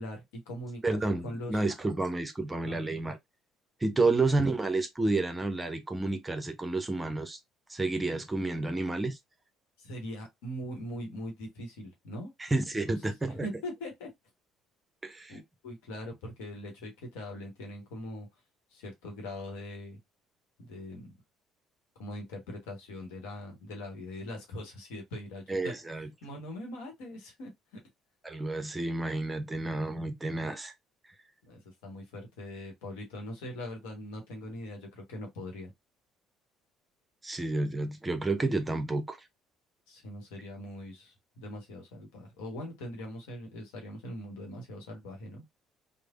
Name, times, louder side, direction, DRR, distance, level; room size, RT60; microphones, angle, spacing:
voice 1, 0.0-1.0 1.2-1.6 2.6-3.0 4.0-4.1 9.8-12.3 12.8-12.9 13.2-14.1 15.3-18.3 18.7-20.0 20.6-21.2 22.0-25.7 26.2-27.8 31.4-35.7 39.9-45.4, left 1 dB, 70° left, 1.0 m, -41 dB
voice 2, 0.8-3.2 3.8-7.4 7.7-9.2 12.4-13.5 15.0-15.3 25.5-26.1 28.2-30.7 37.2-39.2, right 2 dB, 15° right, 0.6 m, -30 dB
3.2 x 2.0 x 2.4 m
figure-of-eight pair, 55°, 0 cm